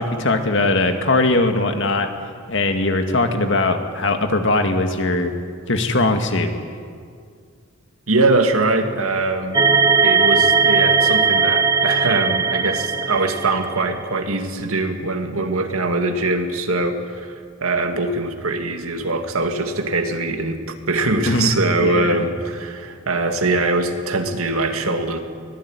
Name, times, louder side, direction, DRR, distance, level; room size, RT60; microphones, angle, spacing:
voice 1, 0.0-2.1 2.5-5.3 5.7-6.5 21.3-21.5 21.8-22.2, left 2 dB, 60° left, 6 dB, 2.2 m, -20 dB
voice 2, 8.1-25.2, right 2 dB, 85° right, 6 dB, 2.3 m, -22 dB
sound 1, 9.5-13.8, right 5 dB, 20° right, 0.9 m, -18 dB
24.0 x 18.5 x 9.9 m, 2.2 s
head